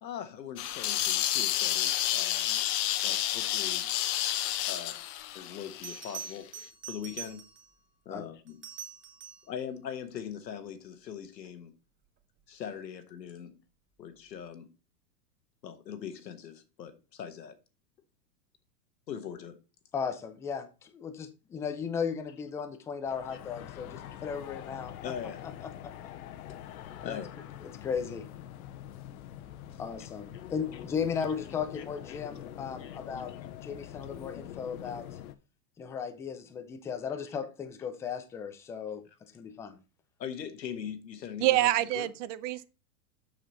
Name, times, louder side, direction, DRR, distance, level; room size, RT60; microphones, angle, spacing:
voice 1, 0.0-2.6 3.0-3.9 4.7-5.0 5.3-6.5 6.9-7.5 8.0-8.7 9.4-11.8 12.5-13.6 14.0-14.7 15.6-17.6 19.1-19.6 25.0-25.5 27.0-27.3 29.7-29.8 31.7-32.2 32.8-33.0 33.3-33.4 40.2-42.1, left 8 dB, 90° left, 1.5 m, -41 dB
sound 1, 0.6-6.4, left 13 dB, 40° left, 0.9 m, -30 dB
Bell, 5.2-5.3 5.8-7.8 8.5-9.5 12.2-12.5, right 7 dB, 25° right, 1.7 m, -44 dB
voice 2, 19.9-25.1 25.8-25.9 27.0-27.2 27.6-28.3 29.8-33.3 33.6-35.1 35.8-39.0 39.3-39.8, left 6 dB, 5° left, 0.3 m, -36 dB
sound 2, 23.1-35.4, left 11 dB, 60° left, 1.0 m, -45 dB
voice 3, 41.4-42.6, right 16 dB, 50° right, 0.7 m, -26 dB
6.6 x 6.5 x 4.0 m
hypercardioid pair, 125°, 49 cm